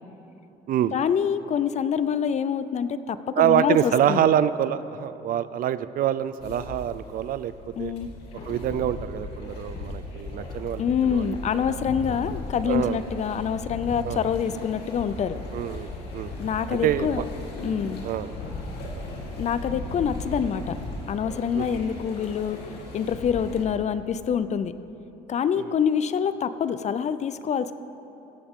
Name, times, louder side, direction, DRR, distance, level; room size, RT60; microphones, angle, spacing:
voice 1, 0.9-4.3 7.8-8.1 10.8-15.4 16.4-17.3 17.6-18.0 19.4-20.8 21.1-22.6 22.9-24.8 25.3-27.7, left 7 dB, 45° left, 13 dB, 0.5 m, -26 dB
voice 2, 3.4-7.5 7.8-7.9 8.5-11.6 12.7-13.0 14.0-14.3 15.5-16.3 16.8-17.1 18.0-18.3 21.5-21.8 25.6-25.7, right 10 dB, 55° right, 15 dB, 0.5 m, -25 dB
sound 1, 6.4-23.7, left 2 dB, 75° left, 2.6 m, -37 dB
16.0 x 15.0 x 3.7 m, 3.0 s
cardioid pair, 110°, 17 cm